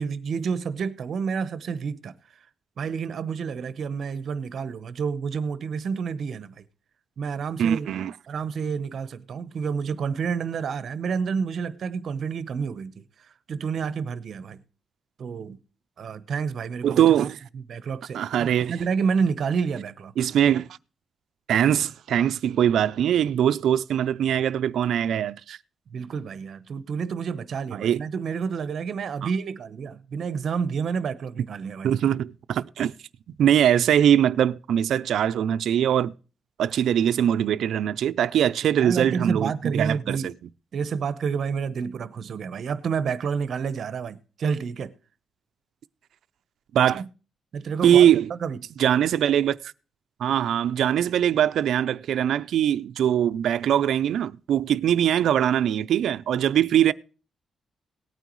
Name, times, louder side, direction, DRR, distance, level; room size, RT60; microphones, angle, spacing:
voice 1, 0.0-2.1 2.8-6.7 7.2-7.9 8.3-13.1 13.5-14.6 15.2-15.6 16.0-17.0 17.5-20.1 25.9-32.0 38.8-40.3 40.7-44.9 46.9-47.1 47.5-48.6, right 6 dB, 55° right, 0.9 m, -29 dB
voice 2, 7.6-8.1 16.8-17.4 18.1-18.7 20.2-20.7 21.5-25.6 27.8-28.0 29.2-29.3 31.8-32.9 33.4-36.1 36.6-40.3 46.7-47.0 47.8-48.3 48.8-49.6 50.2-56.9, right 10 dB, 75° right, 0.5 m, -22 dB
18.0 x 9.2 x 3.1 m
cardioid pair, 145°, 0 cm